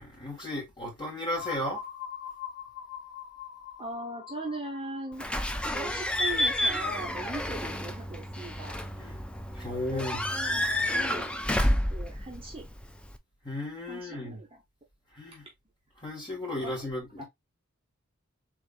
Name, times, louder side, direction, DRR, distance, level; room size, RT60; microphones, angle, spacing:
voice 1, 0.0-1.8 9.0-9.2 9.5-10.2 13.4-14.4 15.1-15.5 16.0-17.2, left 1 dB, 20° left, 2.1 m, -35 dB
sound 1, 1.4-7.0, left 9 dB, 60° left, 0.6 m, -43 dB
voice 2, 3.8-5.3 5.7-8.8 9.7-10.0 10.3-11.4 11.9-12.7 13.9-14.5 16.6-16.9 17.2-17.3, right 2 dB, 25° right, 0.9 m, -39 dB
Slam / Squeak / Alarm, 5.2-13.2, left 1 dB, 5° left, 0.3 m, -30 dB
3.6 x 3.5 x 2.4 m
head